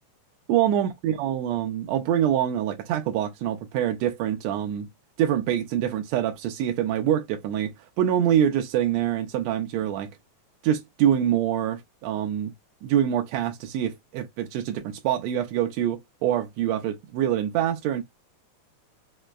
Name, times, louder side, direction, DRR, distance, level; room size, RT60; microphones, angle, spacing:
voice 1, 0.5-4.9 5.2-7.7 8.0-10.1 10.6-12.5 12.8-18.0, right 10 dB, 80° right, 1.6 m, -25 dB
5.1 x 2.0 x 2.3 m
omnidirectional pair, 3.5 m